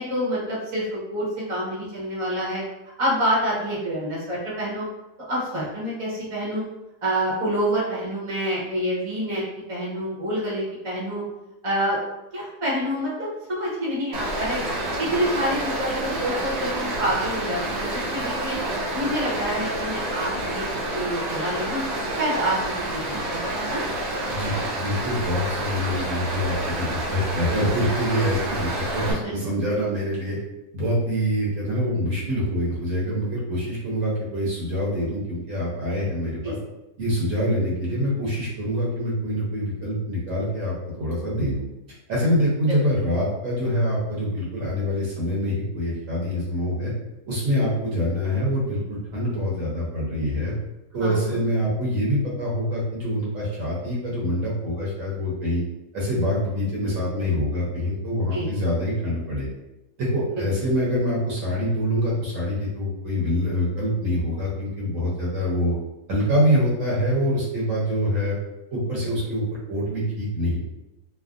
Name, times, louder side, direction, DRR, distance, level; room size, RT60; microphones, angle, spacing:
voice 1, 0.0-2.6 3.0-4.8 5.3-6.7 7.0-9.4 9.7-11.2 11.6-12.0 12.3-14.6 15.0-18.6 18.9-20.6 20.9-21.8 22.2-23.8 29.0-29.3 36.4-36.6 42.7-42.8 51.0-51.3 58.3-58.5 60.3-60.5, equal, 30° right, -6 dB, 0.7 m, -27 dB
Stream, 14.1-29.1, right 1 dB, 80° right, 1.2 m, -28 dB
voice 2, 24.3-30.4 30.7-36.5 37.0-40.7 41.0-41.6 42.1-46.9 47.3-50.5 50.9-55.6 55.9-59.5 60.0-65.7 66.1-68.4 68.7-70.6, equal, 60° right, -6 dB, 1.1 m, -25 dB
3.3 x 2.0 x 2.4 m, 0.94 s
omnidirectional pair, 1.7 m